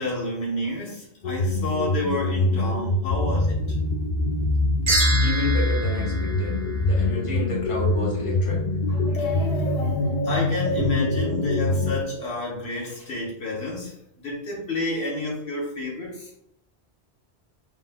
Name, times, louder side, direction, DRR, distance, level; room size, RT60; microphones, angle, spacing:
voice 1, 0.0-3.8 8.9-16.3, left 2 dB, 70° left, -3 dB, 1.3 m, -30 dB
sound 1, 1.2-12.0, left 2 dB, 55° left, 0.5 m, -24 dB
sound 2, 4.9-7.3, right 2 dB, 50° right, 0.9 m, -28 dB
voice 2, 5.2-6.5 6.8-8.6 10.9-11.6, left 1 dB, 30° left, -4 dB, 1.3 m, -30 dB
5.5 x 3.2 x 2.2 m, 0.78 s
omnidirectional pair, 1.1 m